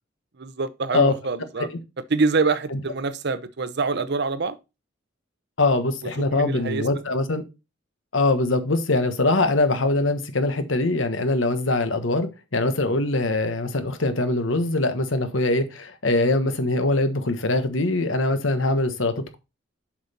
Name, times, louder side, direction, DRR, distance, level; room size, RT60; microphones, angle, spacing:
voice 1, 0.4-1.7 2.1-4.6 6.3-6.9, right 4 dB, 60° right, 0.7 m, -25 dB
voice 2, 5.6-7.4 8.1-19.3, left 2 dB, 80° left, 1.3 m, -22 dB
7.4 x 5.6 x 4.2 m
head